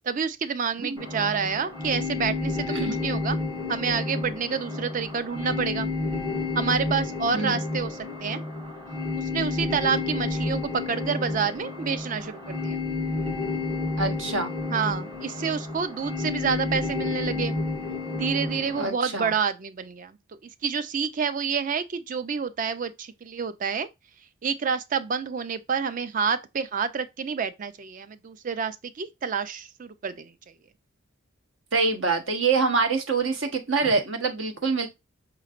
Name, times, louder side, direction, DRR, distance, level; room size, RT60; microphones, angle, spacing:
voice 1, 0.0-3.4 3.7-5.9 6.5-8.4 9.1-12.8 14.7-17.6 18.1-20.2 20.6-23.9 24.4-30.3 33.8-33.9, right 6 dB, 40° right, 0.4 m, -28 dB
sound 1, 1.0-18.9, left 3 dB, 25° right, 1.3 m, -30 dB
voice 2, 14.0-14.5 18.8-19.3 31.7-34.9, right 4 dB, 70° right, 1.0 m, -25 dB
5.7 x 3.1 x 2.4 m
head